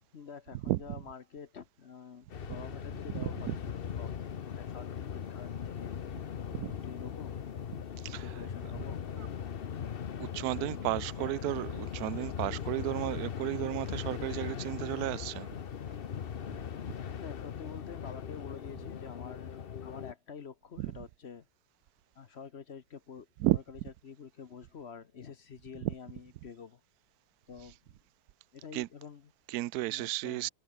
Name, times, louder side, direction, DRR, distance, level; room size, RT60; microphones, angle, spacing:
voice 1, 0.0-3.5 4.0-4.2 4.5-5.9 6.8-7.3 8.2-9.0 10.4-10.9 11.2-11.6 17.2-21.5 22.1-23.3 23.5-26.8 27.5-27.9 28.5-29.3 29.9-30.5, left 6 dB, 45° left, 0.9 m, -48 dB
sound 1, 2.3-20.1, left 8 dB, 60° left, 0.6 m, -39 dB
voice 2, 3.1-3.6 6.6-6.7 8.0-8.5 8.8-8.9 9.2-9.3 10.2-15.5 20.8-21.0 23.4-23.6 25.8-25.9 28.7-28.9 29.5-30.5, right 16 dB, 75° right, 0.8 m, -33 dB
omnidirectional pair, 2.1 m